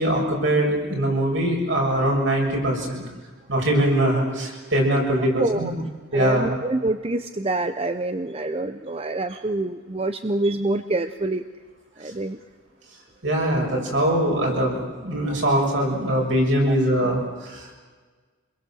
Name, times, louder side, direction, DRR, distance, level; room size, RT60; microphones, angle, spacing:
voice 1, 0.0-3.0 3.5-5.7 6.1-6.6 13.2-17.7, right 1 dB, 65° right, -1 dB, 7.3 m, -22 dB
voice 2, 5.4-11.4 12.0-12.4 16.7-16.8, right 2 dB, 30° right, 10 dB, 0.7 m, -26 dB
27.0 x 21.5 x 7.8 m, 1.5 s
head